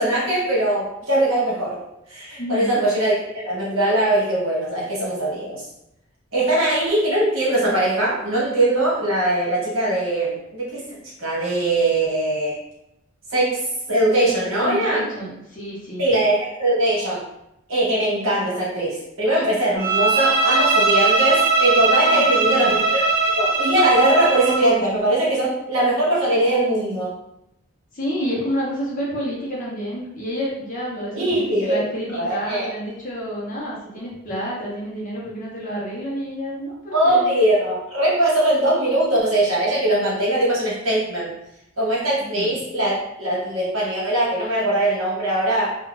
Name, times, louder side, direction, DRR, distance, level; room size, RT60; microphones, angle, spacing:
voice 1, 0.0-1.8 2.1-5.6 6.3-12.6 13.3-15.0 16.0-17.2 17.7-23.0 23.3-27.1 31.1-31.8 32.2-32.7 36.9-41.3 41.8-45.8, right 1 dB, 70° right, -6 dB, 1.3 m, -21 dB
voice 2, 2.4-2.8 14.4-16.1 22.1-22.8 27.9-37.4 42.2-42.5, equal, 40° left, -5 dB, 0.8 m, -29 dB
Bowed string instrument, 19.8-24.7, right 3 dB, 50° right, 1.0 m, -19 dB
2.5 x 2.4 x 3.1 m, 0.84 s
head